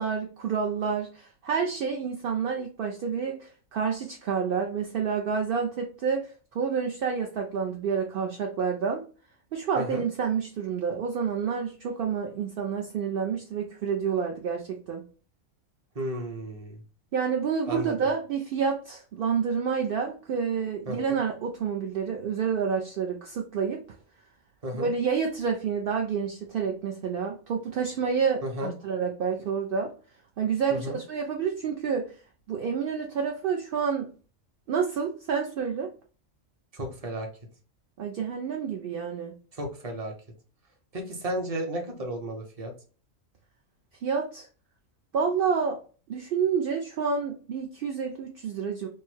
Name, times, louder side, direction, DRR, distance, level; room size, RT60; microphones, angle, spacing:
voice 1, 0.0-9.0 9.5-15.0 17.1-23.8 24.7-29.9 30.4-32.1 32.5-34.1 34.7-35.9 38.0-39.3 44.0-44.5 45.1-45.8 46.1-48.9, right 6 dB, 60° right, 2 dB, 0.6 m, -29 dB
voice 2, 15.9-16.8 17.7-17.9 20.9-21.2 24.6-24.9 28.4-28.7 30.7-31.0 36.7-37.3 39.5-40.1 40.9-42.7, equal, 30° right, 1 dB, 0.8 m, -33 dB
3.3 x 2.1 x 4.3 m, 0.38 s
omnidirectional pair, 1.4 m